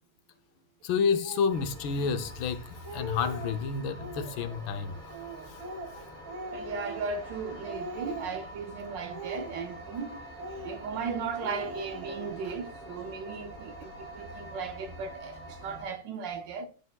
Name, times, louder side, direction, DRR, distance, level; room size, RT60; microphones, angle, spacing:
voice 1, 0.8-4.9, left 5 dB, 75° left, 1.3 m, -29 dB
Speech, 1.2-1.6 2.3-2.4 2.7-3.6 4.0-4.6 5.1-7.4 7.6-8.6 9.1-10.0 10.4-11.1 11.4-12.6, right 1 dB, 40° right, 1.4 m, -41 dB
sound 1, 1.5-15.8, equal, 10° right, 1.6 m, -46 dB
voice 2, 6.5-10.2 10.6-16.7, right 5 dB, 70° right, 1.2 m, -36 dB
11.0 x 4.3 x 2.3 m
omnidirectional pair, 2.3 m